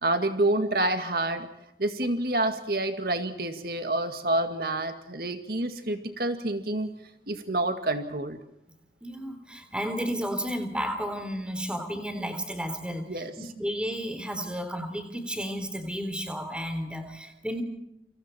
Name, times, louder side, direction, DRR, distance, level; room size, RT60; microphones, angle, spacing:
voice 1, 0.0-1.5 1.8-6.9 7.3-8.4 13.1-13.3, right 1 dB, 55° right, 7 dB, 2.0 m, -28 dB
voice 2, 9.0-17.6, equal, 5° right, 7 dB, 3.2 m, -32 dB
29.0 x 26.5 x 4.4 m, 0.82 s
head